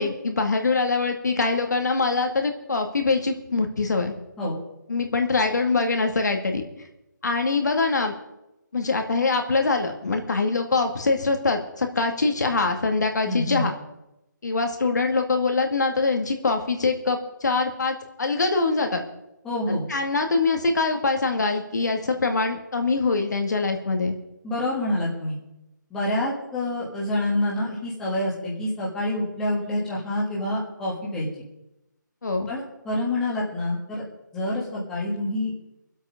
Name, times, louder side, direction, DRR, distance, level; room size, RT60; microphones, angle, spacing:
voice 1, 0.0-4.1 4.9-6.9 7.2-8.1 8.7-13.7 14.4-19.0 19.7-24.2 32.2-32.5, left 3 dB, 60° left, 4 dB, 2.2 m, -24 dB
voice 2, 13.2-13.7 19.4-19.8 24.4-25.4 25.9-31.3 32.5-34.0 34.3-35.5, left 1 dB, 5° left, -6 dB, 1.7 m, -27 dB
23.5 x 8.1 x 5.2 m, 0.90 s
hypercardioid pair, 170°, 11 cm